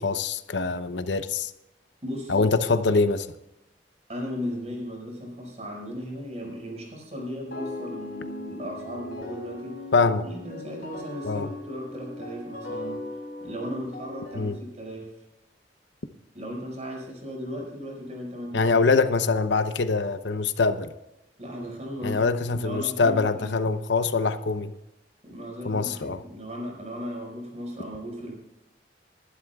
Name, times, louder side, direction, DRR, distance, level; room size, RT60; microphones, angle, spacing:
voice 1, 0.0-1.5 2.3-3.3 9.9-10.2 11.2-11.5 14.4-14.6 18.5-20.9 22.0-24.7 25.6-26.2, left 4 dB, 80° left, 11 dB, 0.8 m, -24 dB
voice 2, 2.0-2.5 4.1-9.8 10.2-13.0 13.4-15.2 16.3-18.7 21.4-23.7 25.2-28.3, equal, 40° right, 0 dB, 5.4 m, -36 dB
sound 1, 7.5-14.4, left 2 dB, 60° left, 4.7 m, -38 dB
22.0 x 11.5 x 2.4 m, 0.94 s
head